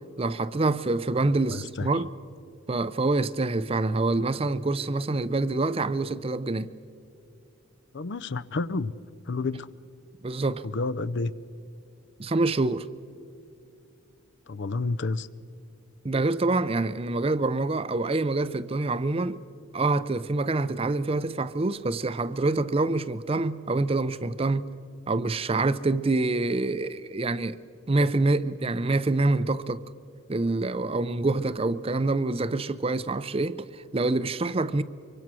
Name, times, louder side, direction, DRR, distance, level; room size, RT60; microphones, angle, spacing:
voice 1, 0.2-2.1 2.7-6.7 10.2-10.7 12.2-12.9 16.0-19.4 19.7-24.7 25.1-27.6 27.9-29.8 30.3-34.8, right 2 dB, 25° right, 0.5 m, -26 dB
voice 2, 1.5-1.9 7.9-8.9 9.3-9.7 10.6-11.3 14.5-15.3, left 3 dB, 55° left, 0.5 m, -30 dB
24.5 x 24.0 x 6.2 m
head